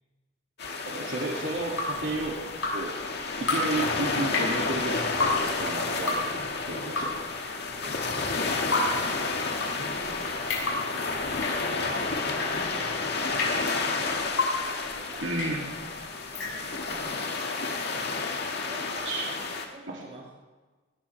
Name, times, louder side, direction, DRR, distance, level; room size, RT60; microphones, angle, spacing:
sound 1, 0.6-19.7, left 3 dB, 60° left, 2.1 m, -31 dB
voice 1, 0.9-2.4 2.7-2.9 3.4-6.4 6.7-7.1 15.2-15.7 19.0-19.3 19.9-20.0, right 2 dB, 80° right, -2 dB, 2.6 m, -32 dB
Drip, 1.5-17.0, left 3 dB, 80° left, 6.3 m, -33 dB
voice 2, 7.5-15.5 15.9-17.4 18.4-20.3, right 1 dB, 35° right, -3 dB, 6.5 m, -49 dB
19.5 x 19.5 x 3.5 m, 1.3 s
head